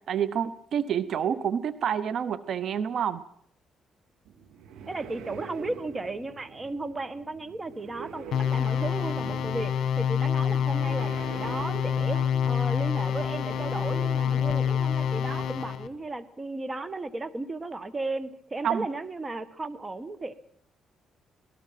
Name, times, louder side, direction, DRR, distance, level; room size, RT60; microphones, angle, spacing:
voice 1, 0.1-3.2 18.6-18.9, right 8 dB, 65° right, 15 dB, 0.9 m, -28 dB
sound 1, 4.2-16.0, right 6 dB, 85° right, 2.6 m, -44 dB
voice 2, 4.9-20.3, right 2 dB, 25° right, 14 dB, 1.6 m, -35 dB
sound 2, 8.3-15.9, left 8 dB, 65° left, 1.5 m, -27 dB
25.5 x 19.5 x 5.9 m, 0.66 s
cardioid pair, 90°, 0 cm